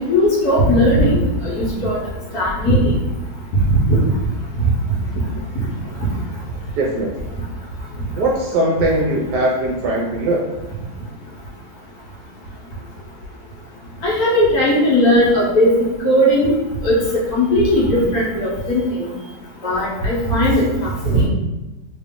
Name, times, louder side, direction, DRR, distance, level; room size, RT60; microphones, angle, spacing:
voice 1, 0.1-2.0 2.3-2.9 3.6-4.0 6.0-6.1 14.0-15.7 16.0-16.5 16.8-16.9 17.3-19.1 19.6-21.3, equal, 55° left, -6 dB, 1.3 m, -17 dB
voice 2, 6.8-7.1 8.1-10.4, right 1 dB, 70° right, -1 dB, 1.0 m, -20 dB
3.1 x 2.9 x 3.6 m, 1.0 s
omnidirectional pair, 2.1 m